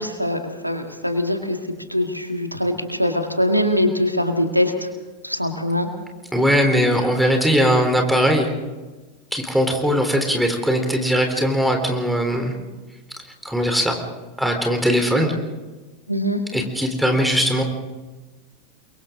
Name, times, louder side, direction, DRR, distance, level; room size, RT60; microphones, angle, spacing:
voice 1, 0.0-1.6 1.9-4.9 5.2-5.9 16.1-16.4, left 1 dB, 90° right, 5 dB, 2.0 m, -22 dB
voice 2, 6.3-8.5 9.3-12.5 13.4-14.0 14.4-15.3 16.5-17.6, equal, ahead, 3 dB, 3.7 m, -20 dB
30.0 x 23.0 x 3.8 m, 1.2 s
figure-of-eight pair, 90°, 0 cm